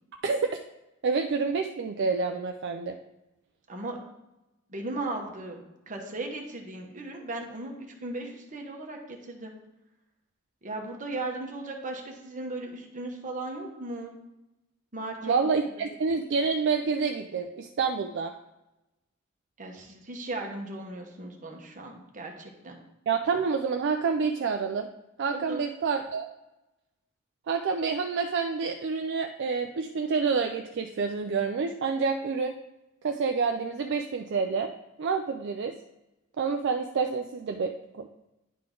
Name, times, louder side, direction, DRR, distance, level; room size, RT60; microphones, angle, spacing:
voice 1, 1.0-3.0 15.2-18.3 23.1-24.9 25.2-26.3 27.5-32.6 33.0-34.7 35.0-35.7 36.4-38.1, right 5 dB, 60° right, 5 dB, 0.4 m, -28 dB
voice 2, 3.7-4.0 4.7-7.7 8.0-9.5 10.6-14.1 14.9-15.3 15.8-15.9 19.6-22.8 25.3-25.6, right 2 dB, 40° right, 1 dB, 1.1 m, -37 dB
10.0 x 3.8 x 3.8 m, 0.96 s
head